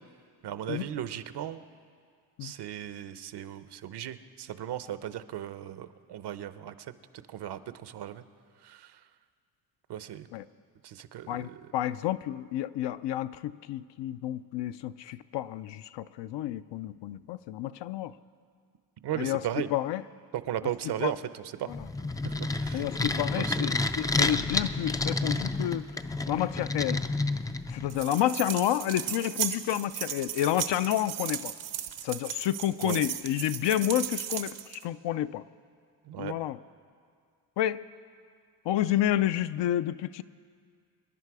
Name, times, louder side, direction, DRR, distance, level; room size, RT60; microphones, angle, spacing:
voice 1, 0.4-1.6 2.4-6.7 7.3-8.2 8.6-8.9 9.9-10.3 10.8-11.6 19.0-19.7 20.3-21.7 22.2-22.8 23.3-23.6 32.8-33.0 36.1-36.3, right 11 dB, 60° right, 13 dB, 0.8 m, -36 dB
voice 2, 11.3-18.1 19.1-19.4 19.7-20.0 21.0-21.1 21.7-21.9 22.7-25.9 26.3-27.0 27.7-31.5 32.0-35.4 36.2-36.6 37.6-37.8 38.7-40.2, left 12 dB, 65° left, 13 dB, 0.6 m, -30 dB
sound 1, 21.7-28.0, left 2 dB, 10° left, 0.4 m, -30 dB
sound 2, 27.9-34.8, right 11 dB, 75° right, 1.2 m, -36 dB
26.0 x 11.0 x 4.8 m, 2.1 s
cardioid pair, 95°, 47 cm